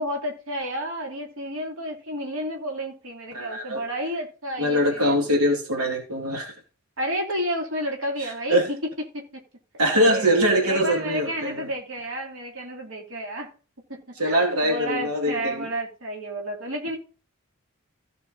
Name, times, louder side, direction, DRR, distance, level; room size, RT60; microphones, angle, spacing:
voice 1, 0.0-5.2 7.0-8.8 9.1-9.4 10.0-13.5 13.9-17.0, equal, 60° right, 2.9 m, -31 dB
voice 2, 3.3-3.8 4.6-6.5 8.2-8.7 9.8-11.7 14.2-15.6, equal, 80° right, 2.6 m, -23 dB
15.5 x 6.2 x 4.0 m
head